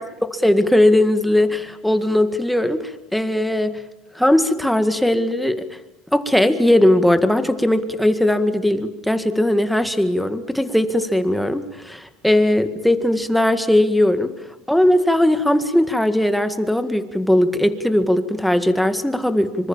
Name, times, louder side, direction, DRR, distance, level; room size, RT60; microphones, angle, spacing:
voice 1, 0.3-3.8 4.2-5.7 6.1-14.3 14.7-19.7, left 1 dB, ahead, 9 dB, 1.9 m, -18 dB
25.5 x 25.0 x 7.4 m, 0.92 s
supercardioid pair, 130°, 0 cm